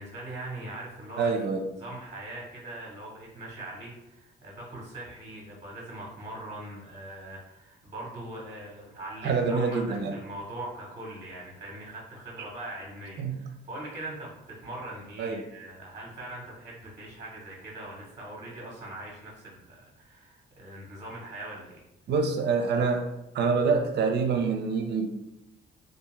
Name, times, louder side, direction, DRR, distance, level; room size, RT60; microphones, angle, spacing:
voice 1, 0.0-1.4 1.7-21.8, right 1 dB, 30° right, -4 dB, 0.9 m, -41 dB
voice 2, 1.2-1.6 9.2-10.1 13.2-13.4 15.2-15.4 22.1-23.0 23.3-25.1, right 5 dB, 60° right, 5 dB, 0.5 m, -26 dB
2.5 x 2.3 x 3.1 m, 0.87 s
cardioid pair, 90°, 20 cm